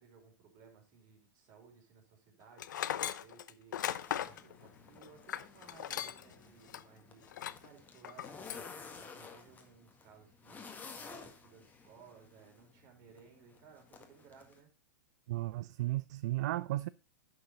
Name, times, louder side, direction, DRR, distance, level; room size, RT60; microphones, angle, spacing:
voice 1, 0.0-14.7, right 6 dB, 45° right, 4.3 m, -60 dB
Tools, 2.6-6.3 6.7-6.8 7.3-7.7 8.0-8.7, left 11 dB, 70° left, 0.7 m, -38 dB
sound 1, 3.7-14.6, left 5 dB, 15° left, 1.8 m, -53 dB
voice 2, 15.3-16.9, right 16 dB, 60° right, 0.4 m, -34 dB
11.0 x 6.6 x 3.9 m
hypercardioid pair, 110°, 10 cm